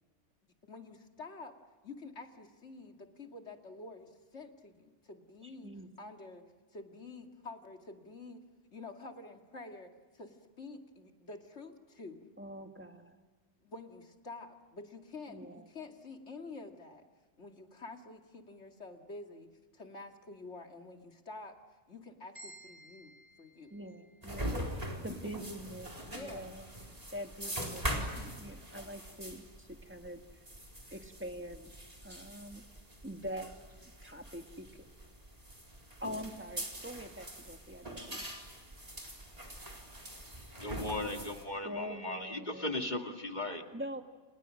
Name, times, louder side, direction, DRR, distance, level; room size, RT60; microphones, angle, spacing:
voice 1, 0.6-1.5 1.8-5.7 6.0-6.4 6.7-8.4 8.7-12.3 13.6-17.0 17.4-19.5 19.7-21.5 21.9-23.1 23.4-23.7 25.0-25.5 26.0-26.6, left 3 dB, 80° left, 3 dB, 2.7 m, -48 dB
voice 2, 5.4-5.9 12.4-13.2 15.3-15.6 23.7-26.7 27.1-30.2 30.9-31.7 32.0-32.6 33.0-33.5 34.0-34.7 36.0-38.3 41.6-42.7 43.7-44.0, equal, 10° right, 5 dB, 1.9 m, -44 dB
sound 1, 22.4-24.5, right 1 dB, 60° right, 7.3 m, -55 dB
sound 2, 24.2-41.5, right 1 dB, 35° right, 4.4 m, -43 dB
voice 3, 40.6-43.6, left 2 dB, 40° left, 4 dB, 2.3 m, -37 dB
29.5 x 29.5 x 6.5 m, 1.4 s
omnidirectional pair, 1.2 m